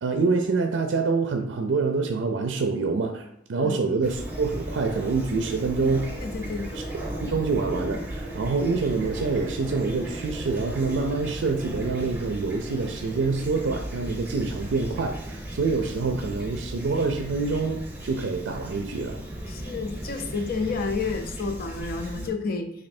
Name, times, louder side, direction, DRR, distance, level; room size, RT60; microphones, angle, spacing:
voice 1, 0.0-6.1 6.7-19.2, right 4 dB, 85° right, 5 dB, 0.4 m, -26 dB
Fowl / Chirp tweet, 4.0-22.3, right 1 dB, 10° right, 0.7 m, -36 dB
voice 2, 6.2-6.8 19.5-22.7, left 4 dB, 55° left, 6 dB, 0.5 m, -30 dB
3.1 x 2.6 x 4.2 m, 0.78 s
head